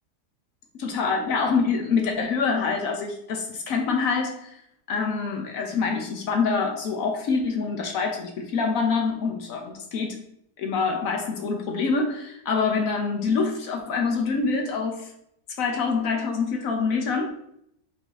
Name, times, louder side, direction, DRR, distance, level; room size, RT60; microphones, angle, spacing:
voice 1, 0.8-4.6 4.9-10.2 10.6-15.1 15.6-17.3, left 4 dB, 65° left, 3 dB, 1.0 m, -25 dB
4.8 x 2.7 x 3.9 m, 0.74 s
omnidirectional pair, 1.7 m